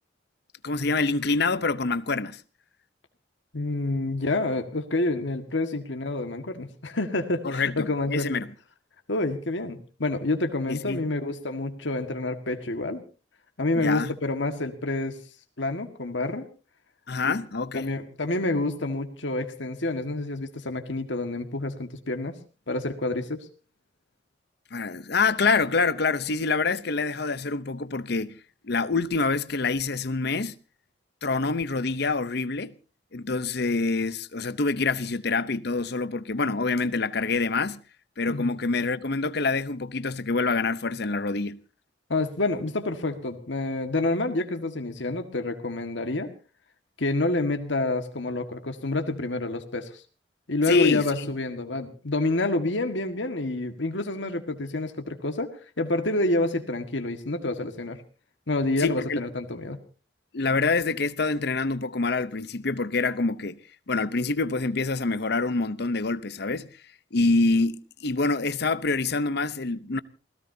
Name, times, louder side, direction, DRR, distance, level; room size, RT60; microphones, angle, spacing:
voice 1, 0.6-2.4 7.4-8.5 10.7-11.0 13.8-14.1 17.1-18.0 24.7-28.4 28.6-30.5 31.2-32.7 33.1-37.8 38.2-41.6 50.7-51.3 58.8-59.2 60.3-63.6 63.9-66.7 67.1-70.0, left 3 dB, 60° left, 0.8 m, -26 dB
voice 2, 3.5-8.4 9.1-13.0 13.6-15.2 15.6-16.4 17.2-17.4 17.7-22.4 22.7-23.5 38.3-38.6 42.1-46.3 47.0-50.0 50.5-55.5 55.8-58.0 58.5-59.8, left 2 dB, 75° left, 1.8 m, -28 dB
28.5 x 17.5 x 2.8 m
head